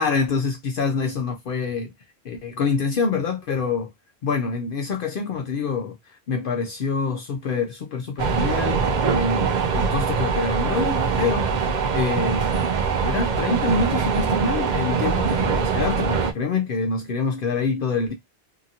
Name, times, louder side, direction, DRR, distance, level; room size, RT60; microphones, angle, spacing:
voice 1, 0.0-1.9 2.2-3.9 4.2-12.5 13.0-18.1, left 4 dB, 60° left, 0.7 m, -26 dB
sound 1, 8.2-16.3, right 6 dB, 55° right, 0.6 m, -23 dB
2.8 x 2.5 x 2.6 m
omnidirectional pair, 1.1 m